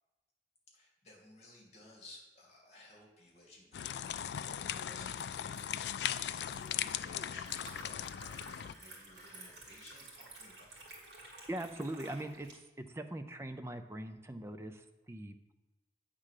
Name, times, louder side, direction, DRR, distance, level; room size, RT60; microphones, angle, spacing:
voice 1, 0.7-11.0, left 2 dB, 40° left, -1 dB, 2.2 m, -58 dB
sound 1, 3.7-8.7, left 10 dB, 70° left, 0.3 m, -38 dB
Liquid, 4.2-12.5, right 2 dB, 70° right, 2.2 m, -54 dB
Breathing, 7.2-10.0, left 2 dB, 20° left, 0.8 m, -60 dB
voice 2, 11.5-15.5, right 1 dB, 15° right, 7 dB, 0.4 m, -42 dB
8.6 x 3.7 x 6.5 m, 1.1 s
head